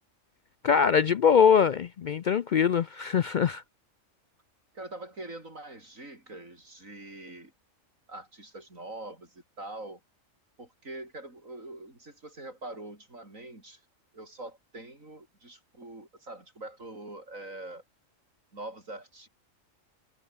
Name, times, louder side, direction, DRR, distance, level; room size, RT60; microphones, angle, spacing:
voice 1, 0.6-3.6, left 7 dB, 70° left, 0.4 m, -22 dB
voice 2, 4.7-7.5 8.1-10.0 10.6-13.8 14.1-17.8 18.5-19.3, right 2 dB, 80° right, 6.8 m, -43 dB
omnidirectional pair, 1.4 m